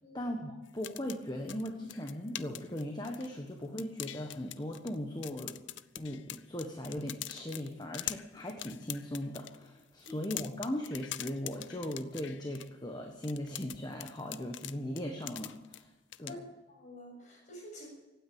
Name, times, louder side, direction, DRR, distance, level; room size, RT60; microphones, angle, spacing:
voice 1, 0.1-5.6 6.0-15.9 16.2-16.4, left 1 dB, 20° left, 2 dB, 1.3 m, -38 dB
sound 1, 0.7-3.5 3.8-5.0 5.2-9.6 10.0-12.7 13.2-15.8 16.1-16.3, left 13 dB, 70° left, 0.5 m, -43 dB
voice 2, 16.8-17.9, left 1 dB, 40° left, -1 dB, 7.1 m, -48 dB
16.0 x 9.4 x 8.7 m, 1.1 s
head